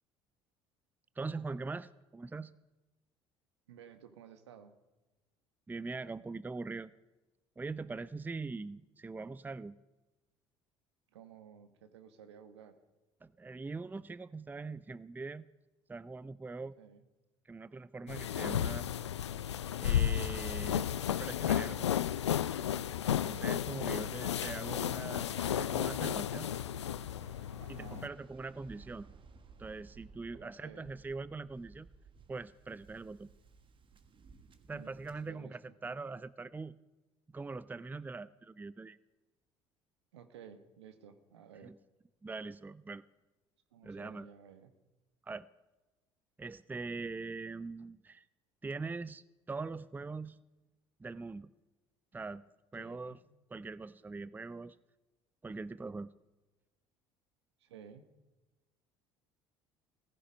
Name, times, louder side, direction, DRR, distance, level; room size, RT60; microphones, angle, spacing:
voice 1, 1.2-2.5 5.7-6.9 7.6-9.7 13.2-15.5 15.9-16.7 17.5-18.9 19.8-20.9 21.2-22.0 23.1-26.5 27.7-29.1 29.6-31.9 32.3-33.3 34.7-36.8 37.3-39.0 41.6-41.7 42.2-43.0 43.8-44.3 45.3-45.5 46.4-48.2 48.6-50.4 51.0-51.5 52.1-52.4 52.7-53.2 53.5-54.8 55.4-56.1, right 3 dB, 10° right, 18 dB, 0.5 m, -42 dB
voice 2, 3.7-4.7 11.1-12.8 16.8-17.0 27.6-28.1 30.3-30.9 34.7-35.7 40.1-41.7 43.7-44.7 52.8-53.2 57.6-58.1, right 8 dB, 80° right, 9 dB, 1.4 m, -54 dB
sound 1, 18.1-28.1, left 10 dB, 85° left, 0.5 m, -33 dB
Waves surf, 25.1-35.3, right 4 dB, 35° right, 1.5 m, -58 dB
18.0 x 15.5 x 5.3 m, 1.1 s
figure-of-eight pair, 60°, 14 cm